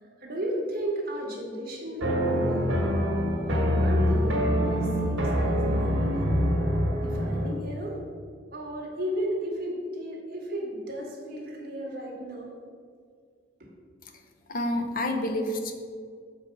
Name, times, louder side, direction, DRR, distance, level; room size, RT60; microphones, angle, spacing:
voice 1, 0.2-2.7 3.4-6.4 7.0-8.0 8.5-12.5 13.6-13.7 15.3-15.4, right 1 dB, 45° right, -2 dB, 1.5 m, -34 dB
sound 1, 2.0-7.6, equal, 75° right, 1.5 m, -25 dB
voice 2, 14.5-15.7, left 1 dB, 40° left, 4 dB, 0.7 m, -28 dB
6.9 x 4.6 x 5.2 m, 2.1 s
head